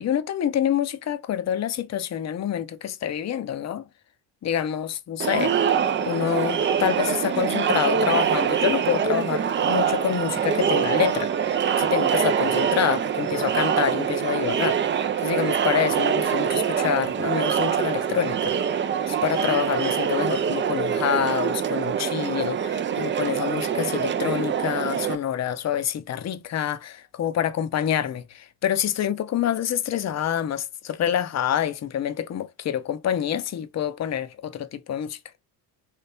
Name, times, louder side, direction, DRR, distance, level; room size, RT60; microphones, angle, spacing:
voice 1, 0.0-3.9 4.4-5.5 6.0-11.3 11.8-18.5 19.1-35.2, left 9 dB, 35° left, 0.7 m, -27 dB
Crowd, 5.2-25.1, right 8 dB, 25° right, 0.4 m, -24 dB
3.2 x 2.8 x 3.4 m
supercardioid pair, 75°, 48 cm